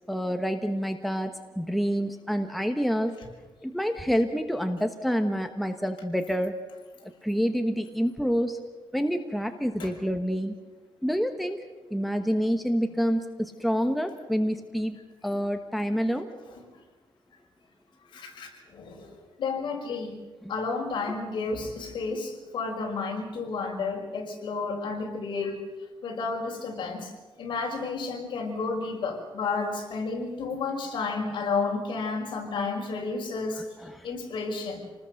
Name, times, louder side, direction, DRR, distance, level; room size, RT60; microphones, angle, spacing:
voice 1, 0.1-3.1 3.6-6.5 7.0-8.6 8.9-10.6 11.0-11.6 11.9-15.0 15.2-16.3 20.4-20.5 33.6-34.1, equal, ahead, 5 dB, 1.1 m, -28 dB
voice 2, 18.1-19.1 19.4-20.2 20.5-25.6 26.0-27.1 27.4-33.7 34.0-34.8, left 4 dB, 60° left, 1 dB, 5.5 m, -31 dB
28.0 x 19.5 x 6.5 m, 1.2 s
cardioid pair, 150°, 9 cm